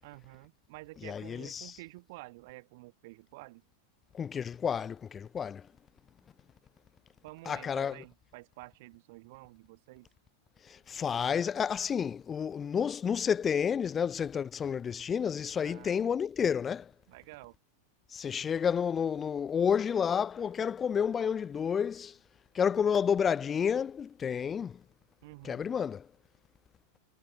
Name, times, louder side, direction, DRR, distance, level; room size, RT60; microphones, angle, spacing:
voice 1, 0.0-3.6 7.2-10.1 15.6-16.0 17.1-17.6 25.2-25.6, right 22 dB, 50° right, 7.4 m, -50 dB
voice 2, 1.0-1.7 4.1-5.6 7.5-8.0 10.7-16.9 18.1-22.1 22.5-24.8 25.4-26.1, left 7 dB, 20° left, 0.4 m, -30 dB
figure-of-eight pair, 90°, 0 cm